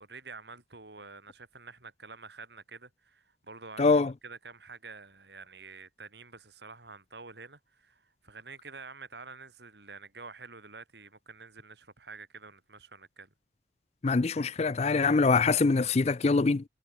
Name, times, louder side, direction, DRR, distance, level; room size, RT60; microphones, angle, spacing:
voice 1, 0.0-13.3, right 4 dB, 65° right, 4.2 m, -48 dB
voice 2, 3.8-4.1 14.0-16.6, left 4 dB, 35° left, 0.4 m, -24 dB
head